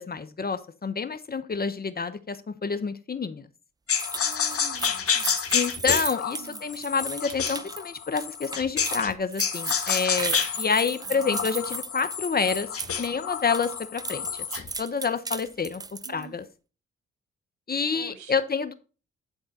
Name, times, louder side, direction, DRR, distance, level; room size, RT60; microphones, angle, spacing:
voice 1, 0.0-3.5 5.5-12.7 13.0-14.3 14.8-15.8 16.1-16.4 17.7-18.7, left 5 dB, 30° left, 11 dB, 1.0 m, -28 dB
sound 1, 3.9-9.1 9.4-14.7, left 7 dB, 50° left, 1.3 m, -29 dB
sound 2, 4.0-13.1 13.4-16.2, right 4 dB, 15° right, 0.3 m, -36 dB
voice 2, 4.2-5.4 6.4-6.7 11.0-11.8 16.0-16.4 17.9-18.4, right 8 dB, 75° right, 7 dB, 1.7 m, -47 dB
11.0 x 3.9 x 4.0 m, 0.34 s
hypercardioid pair, 50°, 30 cm